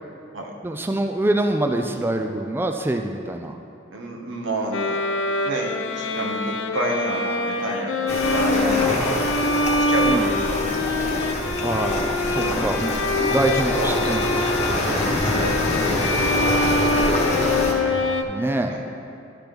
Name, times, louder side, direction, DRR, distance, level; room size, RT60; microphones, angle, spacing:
voice 1, 0.6-3.6 10.1-10.5 11.6-13.0 13.3-14.2 17.8-18.7, right 1 dB, 10° right, 4 dB, 0.3 m, -25 dB
voice 2, 3.9-5.0 5.4-9.2 9.6-10.8 11.6-12.0 12.4-12.7 13.0-14.1 14.7-16.4 18.6-18.8, right 1 dB, 90° right, 0 dB, 1.2 m, -30 dB
Bowed string instrument, 4.7-18.2, left 2 dB, 90° left, 0.6 m, -24 dB
sound 1, 8.1-17.7, left 1 dB, 35° left, 1.2 m, -25 dB
12.0 x 6.0 x 3.4 m, 2.6 s
head